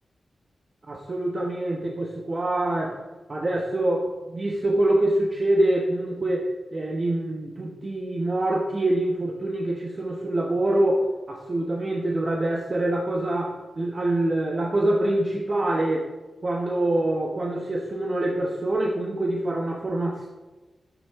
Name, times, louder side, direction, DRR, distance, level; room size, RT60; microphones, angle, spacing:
voice 1, 0.9-16.1 16.4-20.3, right 1 dB, 40° right, 0 dB, 1.0 m, -25 dB
11.0 x 8.5 x 3.6 m, 1.2 s
wide cardioid pair, 85°, 0 cm